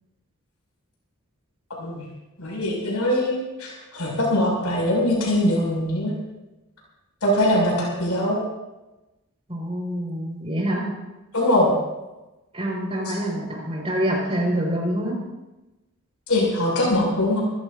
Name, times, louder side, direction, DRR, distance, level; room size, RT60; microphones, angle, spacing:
voice 1, 2.4-6.1 7.2-8.4 11.3-11.7 16.3-17.4, left 1 dB, 90° left, -3 dB, 6.7 m, -22 dB
voice 2, 9.5-10.8 12.5-15.2, equal, 25° right, -2 dB, 5.5 m, -26 dB
28.0 x 15.5 x 2.8 m, 1.0 s
head